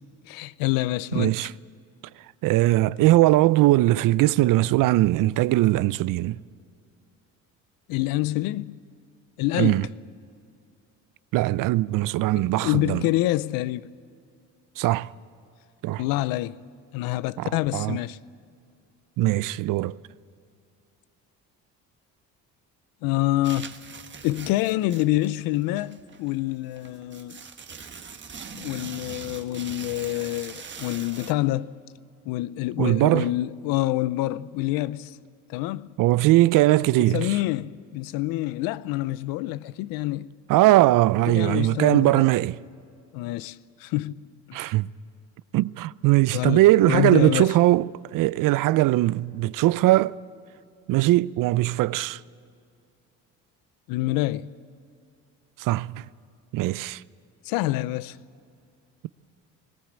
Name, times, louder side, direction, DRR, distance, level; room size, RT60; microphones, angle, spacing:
voice 1, 0.3-1.4 7.9-8.8 9.4-9.8 12.6-13.9 16.0-16.5 16.9-18.2 23.0-23.7 24.2-27.4 28.5-31.7 32.3-35.2 35.5-35.9 37.0-40.3 41.3-42.3 43.1-44.2 44.5-44.7 46.3-47.5 53.9-54.5 57.5-58.2, left 17 dB, 85° left, 0.6 m, -27 dB
voice 2, 1.1-1.5 2.4-6.4 9.6-9.9 11.3-13.0 14.8-15.1 15.8-16.0 17.4-18.0 19.2-19.9 32.8-33.3 36.0-37.4 40.5-42.6 44.5-44.9 45.5-50.2 50.9-52.2 55.6-56.0 56.5-57.0, right 17 dB, 70° right, 0.5 m, -20 dB
sound 1, 23.4-31.3, right 6 dB, 35° right, 1.3 m, -42 dB
19.5 x 18.0 x 8.7 m
supercardioid pair, 85°, 34 cm